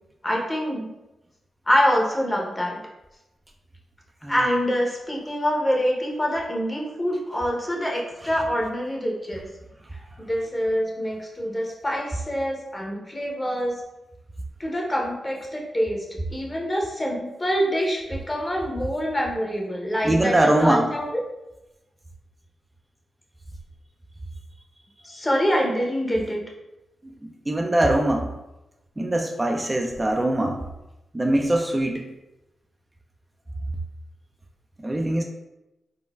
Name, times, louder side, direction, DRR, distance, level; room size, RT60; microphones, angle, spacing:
voice 1, 0.2-0.9 1.7-2.8 4.3-9.5 10.3-13.7 14.6-21.2 25.0-26.4, equal, 25° left, -1 dB, 0.8 m, -25 dB
voice 2, 20.0-20.9 27.2-28.3 29.0-30.6 31.1-32.1 34.8-35.2, right 1 dB, 25° right, 2 dB, 0.3 m, -22 dB
3.8 x 2.1 x 2.3 m, 0.96 s
supercardioid pair, 40°, 0 cm